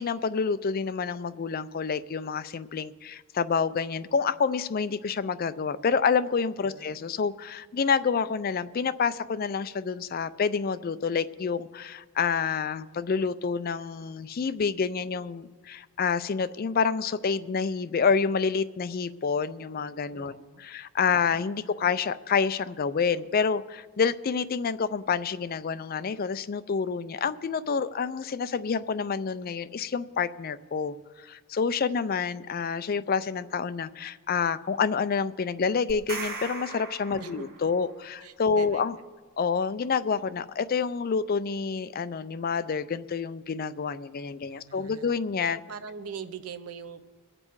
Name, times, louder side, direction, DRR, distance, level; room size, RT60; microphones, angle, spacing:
voice 1, 0.0-20.3 20.6-39.0 39.4-45.6, left 5 dB, 40° left, 14 dB, 0.4 m, -28 dB
voice 2, 6.6-7.0 20.2-20.6 37.2-37.5 38.2-38.8 44.5-45.1 45.7-47.0, right 6 dB, 90° right, 10 dB, 0.8 m, -42 dB
sound 1, 35.9-37.9, right 3 dB, 45° right, 1.6 m, -38 dB
23.0 x 7.6 x 4.6 m, 1.5 s
head